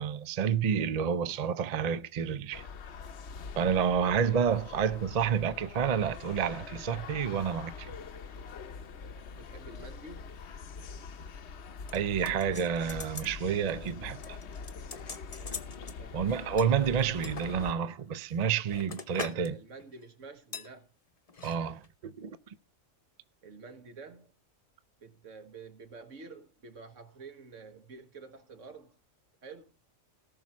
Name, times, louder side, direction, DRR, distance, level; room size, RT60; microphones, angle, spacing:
voice 1, 0.0-2.6 3.6-7.9 11.9-14.4 16.1-19.6 21.4-22.4, right 7 dB, 50° right, 0.5 m, -29 dB
sound 1, 2.5-17.7, left 5 dB, 60° left, 1.0 m, -44 dB
voice 2, 4.0-4.4 9.4-10.3 16.0-16.3 19.1-20.9 23.4-24.3 25.0-29.0 29.4-29.7, right 4 dB, 70° right, 1.7 m, -49 dB
sound 2, 11.9-13.4 13.7-13.9 14.2-16.0 16.6-17.5 18.1-19.5 19.8-20.0 20.5-20.7 21.3-21.6 21.8-21.9, left 5 dB, 30° left, 0.8 m, -43 dB
18.5 x 6.1 x 4.2 m
omnidirectional pair, 1.4 m